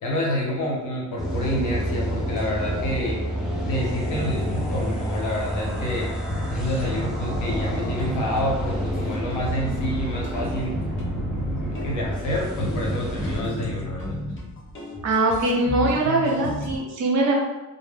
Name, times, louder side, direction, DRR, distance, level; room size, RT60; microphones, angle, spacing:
voice 1, 0.0-3.2 3.6-6.2 6.5-10.8 11.3-14.2, equal, 80° left, -2 dB, 0.9 m, -28 dB
sound 1, 1.2-13.4, equal, ahead, 0.6 m, -29 dB
sound 2, 6.3-16.8, left 1 dB, 40° left, 0.8 m, -33 dB
voice 2, 15.0-17.3, right 2 dB, 65° right, 0 dB, 0.8 m, -22 dB
2.1 x 2.0 x 3.4 m, 1.0 s
cardioid pair, 90°, 30 cm